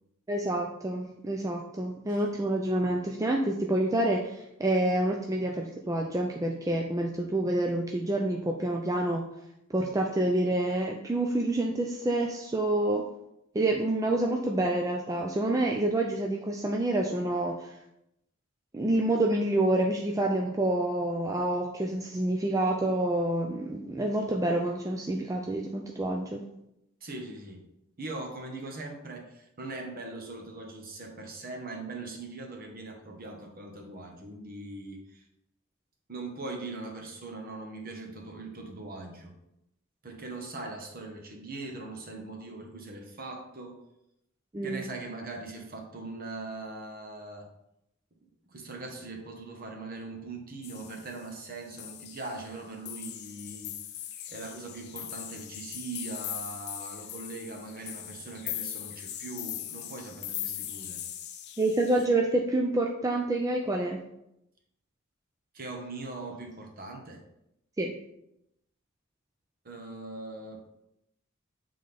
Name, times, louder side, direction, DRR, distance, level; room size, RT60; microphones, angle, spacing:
voice 1, 0.3-9.2 9.7-13.0 13.5-17.8 18.7-26.4 44.5-44.8 61.6-64.0 67.8-68.0, right 1 dB, 15° right, 1 dB, 0.4 m, -28 dB
voice 2, 27.0-27.7 28.0-35.2 36.1-39.3 40.0-43.8 44.6-47.5 48.5-53.7 54.3-61.0 65.5-67.2 69.6-70.7, right 2 dB, 45° right, 1 dB, 1.1 m, -41 dB
sound 1, 50.6-51.4 51.7-52.6 52.9-62.1, left 11 dB, 50° left, 0.5 m, -40 dB
7.5 x 3.8 x 3.4 m, 0.83 s
head